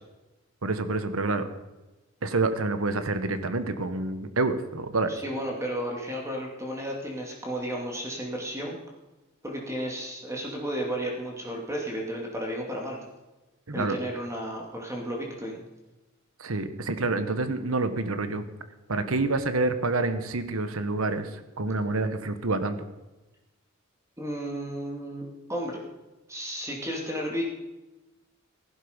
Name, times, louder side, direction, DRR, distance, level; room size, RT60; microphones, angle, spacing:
voice 1, 0.6-1.5 2.2-5.2 13.7-14.0 16.4-18.4 18.9-22.8, right 3 dB, 80° right, 10 dB, 1.2 m, -27 dB
voice 2, 5.1-8.8 9.4-13.0 13.7-15.6 24.2-25.8 26.3-27.5, equal, 15° right, -1 dB, 2.4 m, -33 dB
15.5 x 12.0 x 5.2 m, 1.1 s
head